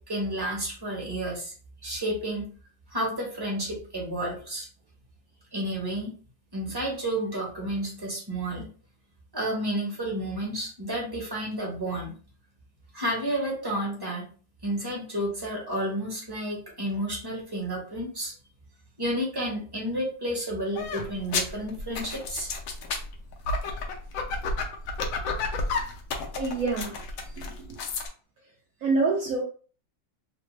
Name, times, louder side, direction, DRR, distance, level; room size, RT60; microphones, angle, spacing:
voice 1, 0.1-1.5 1.8-2.5 2.9-4.7 5.5-6.1 6.5-8.7 9.3-12.1 12.9-14.2 14.6-18.3 19.0-22.5, right 1 dB, 20° right, 0.6 m, -31 dB
sound 1, 20.7-28.1, left 3 dB, 70° left, 0.8 m, -31 dB
voice 2, 26.4-27.8 28.8-29.4, right 3 dB, 85° right, 0.7 m, -28 dB
3.2 x 2.1 x 3.1 m
omnidirectional pair, 2.0 m